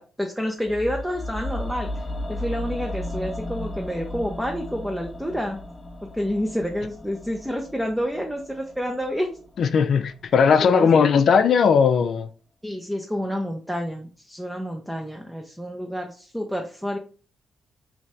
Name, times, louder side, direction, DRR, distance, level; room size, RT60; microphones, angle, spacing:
voice 1, 0.0-2.0 2.3-5.6 6.1-9.4 10.6-10.9 12.6-17.0, equal, ahead, 0.6 m, -29 dB
sound 1, 0.6-10.8 11.0-11.1, left 1 dB, 25° left, 0.9 m, -35 dB
voice 2, 9.6-12.3, left 6 dB, 65° left, 0.4 m, -18 dB
3.2 x 2.6 x 3.2 m
supercardioid pair, 55°, 0 cm